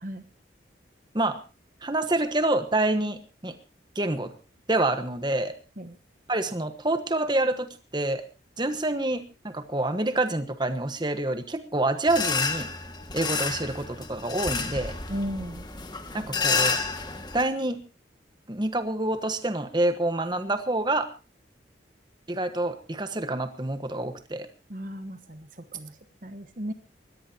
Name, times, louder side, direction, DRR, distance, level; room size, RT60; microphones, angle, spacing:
voice 1, 1.8-3.5 3.9-4.3 4.7-5.6 6.3-8.2 8.6-12.7 13.1-14.9 16.1-16.8 17.3-17.8 18.5-21.1 22.3-24.5, right 2 dB, 25° right, 9 dB, 1.3 m, -27 dB
sound 1, 12.1-17.4, left 4 dB, 25° left, 1.8 m, -30 dB
voice 2, 15.1-15.7 24.7-26.7, equal, 45° right, 9 dB, 1.2 m, -35 dB
22.0 x 17.5 x 2.8 m, 0.31 s
head